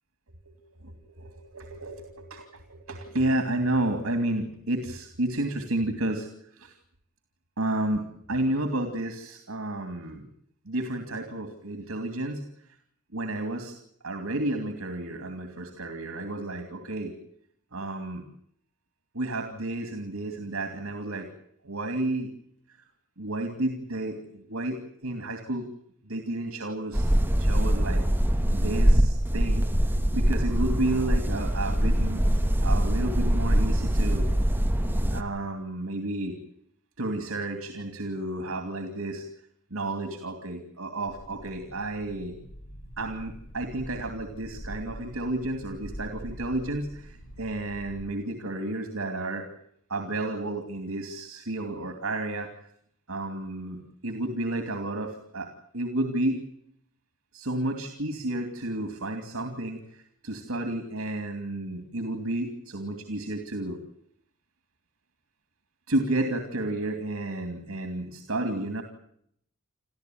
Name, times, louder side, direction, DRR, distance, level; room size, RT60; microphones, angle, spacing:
voice 1, 0.5-6.3 6.6-6.7 7.6-10.3 10.7-12.4 13.1-13.7 14.0-17.1 17.7-18.2 19.1-21.3 21.6-22.3 23.2-25.6 26.1-27.1 27.4-28.0 28.5-29.7 30.1-32.2 32.6-34.3 35.1-36.4 37.0-39.2 39.7-42.3 43.0-49.5 49.9-52.5 53.1-56.4 57.3-63.8 65.9-68.8, right 1 dB, 80° right, 7 dB, 2.7 m, -31 dB
sound 1, 26.9-35.2, equal, 10° right, 1.4 m, -23 dB
sound 2, 41.1-48.0, equal, 70° left, 5.1 m, -44 dB
28.5 x 14.0 x 9.3 m, 0.69 s
head